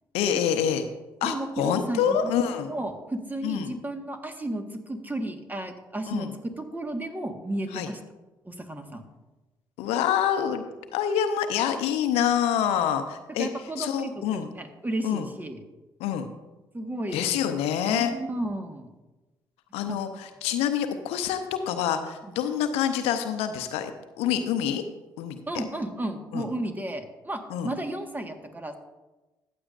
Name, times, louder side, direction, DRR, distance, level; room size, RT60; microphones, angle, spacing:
voice 1, 0.1-0.9 1.2-2.7 3.4-3.7 6.1-6.3 7.7-7.9 9.8-10.7 10.9-13.5 13.8-14.5 15.0-15.3 16.0-16.3 17.1-18.1 19.7-23.9 24.2-24.8 25.2-25.6 26.3-26.4 27.5-27.7, left 9 dB, 75° left, 9 dB, 0.7 m, -26 dB
voice 2, 1.2-2.3 2.7-6.3 6.6-8.0 8.4-9.0 13.4-15.6 16.7-17.3 17.9-18.9 19.9-20.0 22.2-22.3 25.5-28.7, right 1 dB, 15° right, 6 dB, 1.5 m, -33 dB
14.5 x 8.5 x 2.5 m, 1.1 s
hypercardioid pair, 50°, 11 cm